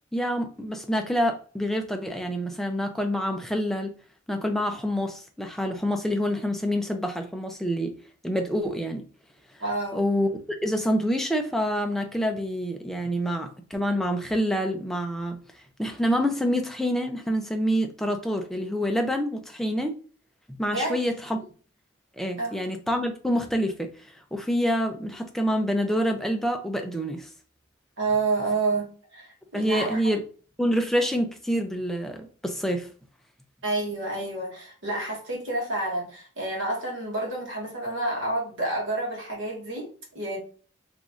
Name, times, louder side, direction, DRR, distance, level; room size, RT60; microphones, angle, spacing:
voice 1, 0.1-3.9 4.3-7.9 8.2-9.0 9.9-10.3 10.6-15.4 15.8-20.0 20.6-21.4 22.2-23.9 24.3-27.3 29.5-30.2 30.6-32.9, equal, ahead, 0.4 m, -27 dB
voice 2, 9.6-10.0 20.6-21.0 22.4-22.6 28.0-30.0 33.6-39.9 40.1-40.4, right 2 dB, 65° right, 1.4 m, -29 dB
3.0 x 2.6 x 3.6 m
head